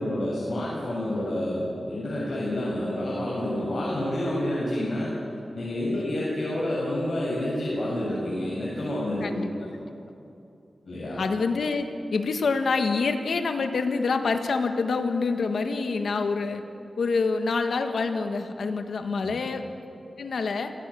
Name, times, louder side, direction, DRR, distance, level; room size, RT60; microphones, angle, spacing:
voice 1, 0.0-5.1 5.5-9.3 9.6-9.7 10.9-11.2 19.2-19.4, left 1 dB, 55° left, -7 dB, 7.4 m, -29 dB
voice 2, 11.2-11.9 12.1-16.6 17.0-19.6 20.2-20.7, left 4 dB, 85° left, 6 dB, 1.6 m, -26 dB
27.0 x 16.5 x 8.6 m, 2.7 s
wide cardioid pair, 70°, 0 cm